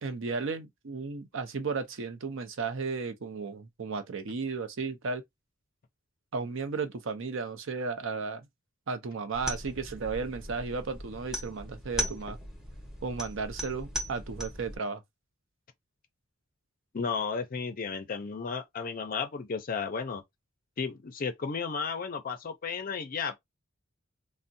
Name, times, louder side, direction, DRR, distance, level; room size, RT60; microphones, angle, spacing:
voice 1, 0.0-5.2 6.3-8.5 8.9-12.4 13.0-15.0, right 4 dB, 65° right, 0.6 m, -34 dB
sound 1, 9.3-14.8, equal, 5° right, 0.8 m, -38 dB
voice 2, 16.9-20.2 20.8-23.4, left 5 dB, 40° left, 0.5 m, -33 dB
3.5 x 2.1 x 2.6 m
head